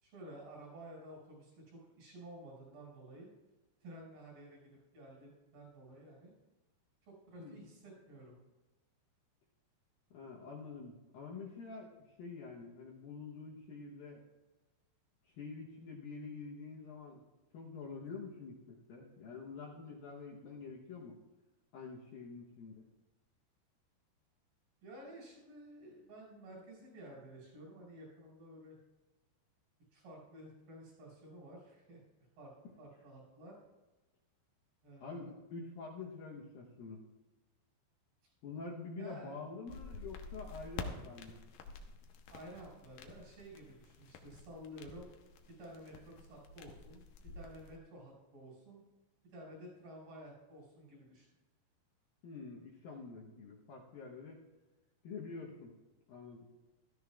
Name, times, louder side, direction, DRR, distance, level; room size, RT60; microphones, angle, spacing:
voice 1, 0.0-3.3 3.8-6.3 7.0-8.3 24.8-28.8 29.9-32.0 32.4-32.5 32.8-33.6 34.8-35.4 39.0-39.3 42.3-45.1 45.6-47.0 47.3-48.8 49.3-51.3, right 1 dB, 60° right, -3 dB, 6.8 m, -52 dB
voice 2, 10.1-14.2 15.3-17.2 17.5-21.2 21.7-22.9 35.0-37.0 38.4-41.4 52.2-54.4 55.0-55.7 56.1-56.5, left 4 dB, 70° left, -3 dB, 2.3 m, -47 dB
sound 1, 39.7-47.8, left 4 dB, 85° left, 1.9 m, -49 dB
16.0 x 13.5 x 2.4 m, 1.1 s
omnidirectional pair, 5.2 m